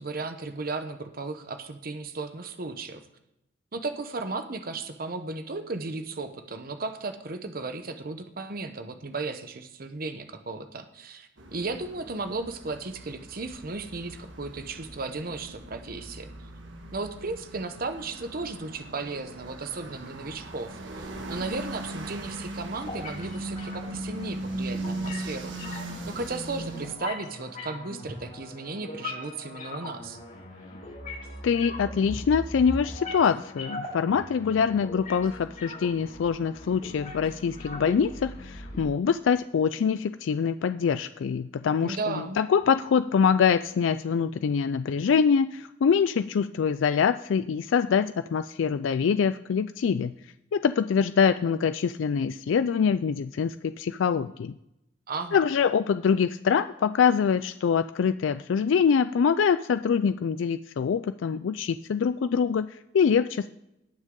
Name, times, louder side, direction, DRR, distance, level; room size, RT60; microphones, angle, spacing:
voice 1, 0.0-3.0 3.7-16.3 16.9-30.2 41.8-42.4 55.1-55.4, right 3 dB, 50° right, 8 dB, 0.9 m, -35 dB
sound 1, 11.4-27.0, right 2 dB, 80° right, 1.6 m, -39 dB
sound 2, 22.8-38.8, left 2 dB, 45° left, 4.5 m, -40 dB
voice 2, 31.4-50.1 50.5-54.5 55.3-63.5, left 6 dB, 85° left, 12 dB, 0.4 m, -24 dB
18.5 x 6.4 x 3.8 m, 0.86 s
head